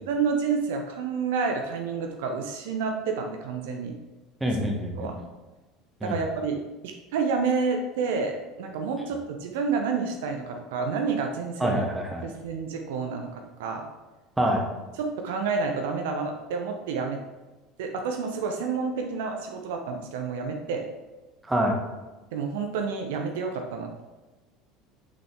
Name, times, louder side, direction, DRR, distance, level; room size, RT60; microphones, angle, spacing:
voice 1, 0.1-3.9 5.0-5.2 6.0-11.8 12.2-13.9 15.0-17.2 17.8-20.8 22.3-24.0, right 5 dB, 65° right, 4 dB, 0.6 m, -29 dB
voice 2, 4.4-5.2 6.0-6.2 11.6-12.3 14.4-14.6 21.4-21.7, equal, 10° right, 1 dB, 1.4 m, -26 dB
6.2 x 5.9 x 3.5 m, 1.2 s
figure-of-eight pair, 70°, 0 cm